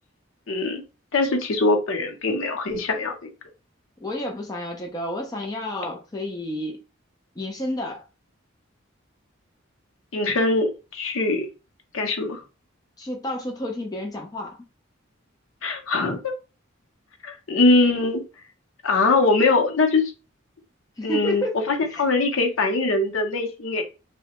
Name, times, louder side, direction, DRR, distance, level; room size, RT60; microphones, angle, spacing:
voice 1, 0.5-0.8 1.1-3.3 10.1-11.5 11.9-12.4 15.6-16.3 17.2-18.2 18.8-20.1 21.0-23.8, left 3 dB, 80° left, 0.7 m, -22 dB
voice 2, 4.0-6.8 7.4-8.0 13.0-14.6 21.0-21.6 21.9-22.0, left 1 dB, 20° left, 0.5 m, -30 dB
3.2 x 2.1 x 2.9 m
head